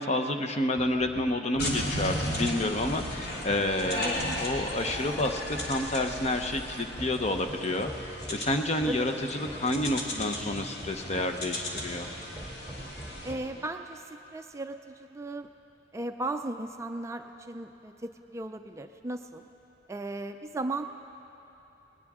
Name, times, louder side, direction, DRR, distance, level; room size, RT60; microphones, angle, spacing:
voice 1, 0.0-7.9 8.3-12.1, left 1 dB, 35° left, 6 dB, 0.8 m, -29 dB
sound 1, 0.7-13.5, right 1 dB, ahead, 1.9 m, -46 dB
sound 2, 1.6-13.3, left 1 dB, 60° left, 2.2 m, -36 dB
voice 2, 3.9-4.4 8.9-9.1 13.2-15.5 15.9-19.5 19.9-20.8, right 2 dB, 15° right, 6 dB, 0.4 m, -36 dB
19.5 x 19.0 x 3.6 m, 3.0 s
head